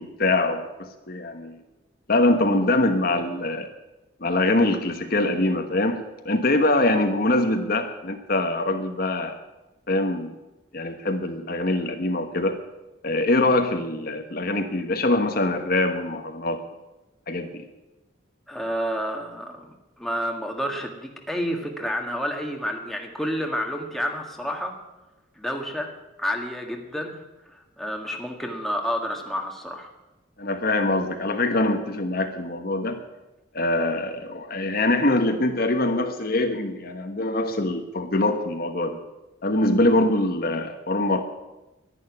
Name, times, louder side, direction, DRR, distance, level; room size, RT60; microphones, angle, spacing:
voice 1, 0.0-1.6 2.1-3.7 4.2-9.3 9.9-10.3 10.7-12.6 13.0-16.6 17.3-17.6 30.4-33.0 33.5-39.0 39.4-41.2, left 2 dB, 50° left, 6 dB, 1.3 m, -23 dB
voice 2, 18.5-24.7 25.4-25.9 26.2-29.9, equal, ahead, 1 dB, 1.7 m, -30 dB
11.5 x 11.0 x 9.7 m, 1.0 s
head